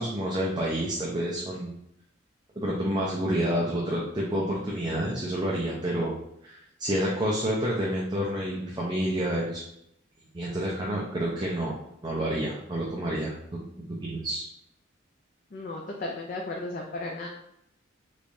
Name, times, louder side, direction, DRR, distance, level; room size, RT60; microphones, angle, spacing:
voice 1, 0.0-1.7 2.6-6.2 6.4-9.6 10.3-11.7 12.0-13.3 13.9-14.4, right 1 dB, 20° right, -4 dB, 0.5 m, -29 dB
voice 2, 15.5-17.3, left 2 dB, 45° left, 0 dB, 0.4 m, -35 dB
3.4 x 3.3 x 2.6 m, 0.76 s
head